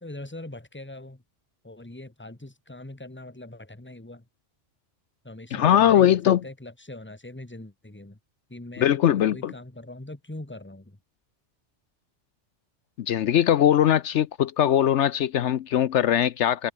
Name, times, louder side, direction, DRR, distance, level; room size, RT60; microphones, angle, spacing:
voice 1, 0.0-1.2 1.6-4.2 5.2-8.2 8.5-11.0, left 1 dB, 10° left, 1.7 m, -42 dB
voice 2, 5.5-6.4 8.8-9.5 13.0-16.7, left 10 dB, 75° left, 1.0 m, -21 dB
omnidirectional pair, 1.2 m